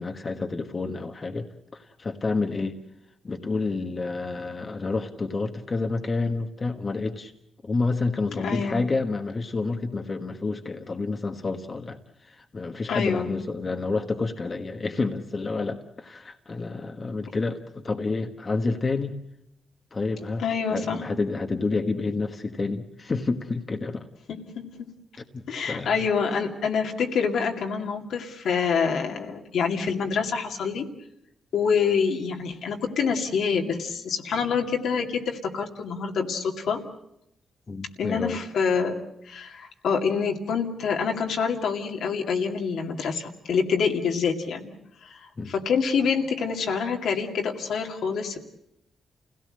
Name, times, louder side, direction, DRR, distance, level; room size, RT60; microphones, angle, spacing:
voice 1, 0.0-2.8 3.2-7.3 7.6-19.1 19.9-20.4 20.7-24.1 25.2-25.4 25.7-26.1 37.7-38.4 45.4-45.5, left 3 dB, 35° left, 5 dB, 1.4 m, -29 dB
voice 2, 8.3-8.8 12.9-13.3 20.4-21.0 24.3-24.9 25.5-30.8 31.5-36.8 38.0-39.0 39.3-44.7 45.0-45.2 45.5-48.4, left 6 dB, 80° left, 2 dB, 2.4 m, -26 dB
28.5 x 17.0 x 7.8 m, 0.80 s
cardioid pair, 90°, 0 cm